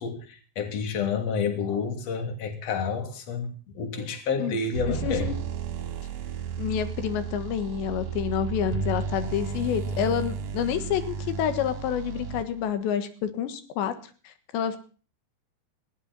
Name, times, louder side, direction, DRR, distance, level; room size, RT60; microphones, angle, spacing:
voice 1, 0.0-5.3, left 5 dB, 40° left, 5 dB, 3.5 m, -29 dB
sound 1, 4.7-12.7, right 6 dB, 60° right, 2.9 m, -33 dB
voice 2, 4.9-5.4 6.6-13.9 14.3-14.8, left 9 dB, 90° left, 9 dB, 3.8 m, -28 dB
19.5 x 17.0 x 4.2 m, 0.39 s
omnidirectional pair, 4.9 m